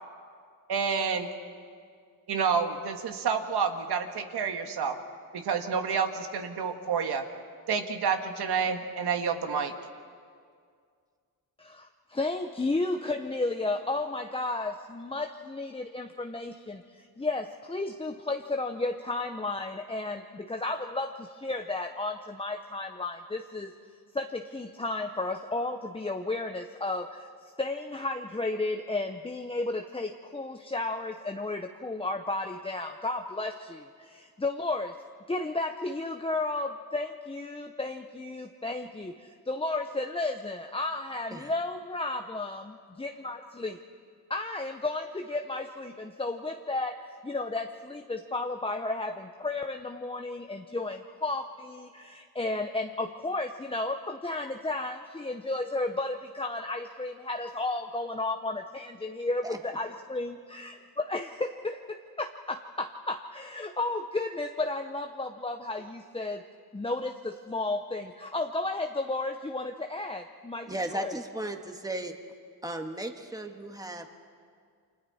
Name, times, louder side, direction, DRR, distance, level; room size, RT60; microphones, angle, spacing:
voice 1, 0.7-1.3 2.3-5.0 5.3-7.2 7.7-9.7, right 6 dB, 75° right, 5 dB, 1.8 m, -29 dB
voice 2, 11.6-23.7 24.1-35.0 35.3-43.8 44.3-66.4 66.7-71.1, left 2 dB, 15° left, 4 dB, 0.8 m, -33 dB
voice 3, 70.7-72.1 72.6-74.1, right 1 dB, 10° right, 4 dB, 1.7 m, -35 dB
29.5 x 25.0 x 4.3 m, 2.1 s
cardioid pair, 100°, 40 cm